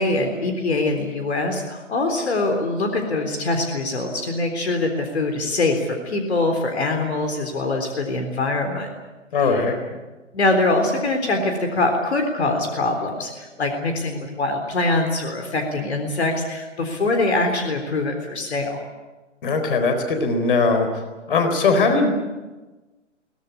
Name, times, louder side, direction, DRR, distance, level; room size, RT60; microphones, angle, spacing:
voice 1, 0.0-8.9 9.4-9.6 10.3-18.8, left 2 dB, 60° left, 5 dB, 3.8 m, -23 dB
voice 2, 9.3-9.8 19.4-20.9 21.3-22.1, left 4 dB, 45° left, 6 dB, 4.1 m, -19 dB
22.5 x 18.0 x 9.7 m, 1.2 s
figure-of-eight pair, 135°, 37 cm